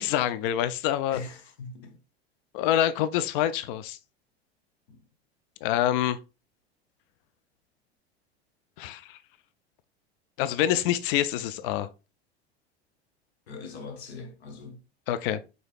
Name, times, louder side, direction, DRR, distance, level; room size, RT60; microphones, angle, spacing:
voice 1, 0.0-1.2 2.5-4.0 5.6-6.2 8.8-9.2 10.4-11.9 15.1-15.4, left 11 dB, 55° left, 0.4 m, -26 dB
voice 2, 1.1-2.0 4.9-5.0 13.5-14.8, left 4 dB, 75° left, 1.2 m, -41 dB
4.8 x 3.9 x 2.3 m
figure-of-eight pair, 80°, 33 cm